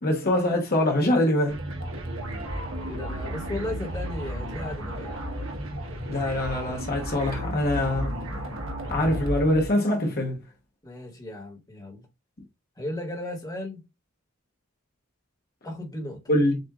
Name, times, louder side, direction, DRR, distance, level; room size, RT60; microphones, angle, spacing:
voice 1, 0.0-1.6 6.1-8.1 8.9-10.4 16.3-16.6, left 1 dB, 50° left, 1.1 m, -24 dB
sound 1, 1.5-9.7, equal, 70° right, 1.4 m, -33 dB
voice 2, 2.9-5.2 10.8-12.1 12.8-13.8 15.6-16.2, left 1 dB, 20° left, 1.5 m, -35 dB
7.6 x 2.6 x 2.4 m
head